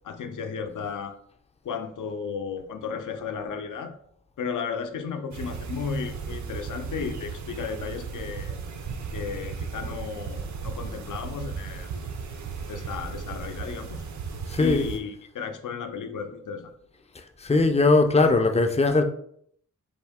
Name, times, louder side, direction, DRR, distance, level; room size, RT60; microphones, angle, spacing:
voice 1, 0.0-1.2 1.6-3.9 4.4-8.6 9.1-12.1 12.7-14.1 14.6-16.7, left 6 dB, 85° left, 7 dB, 0.5 m, -34 dB
sound 1, 5.3-15.0, right 5 dB, 70° right, 0.5 m, -35 dB
voice 2, 14.5-14.9 17.4-19.0, left 3 dB, 20° left, 6 dB, 0.3 m, -20 dB
4.3 x 2.6 x 3.5 m, 0.66 s
wide cardioid pair, 150°, 30 cm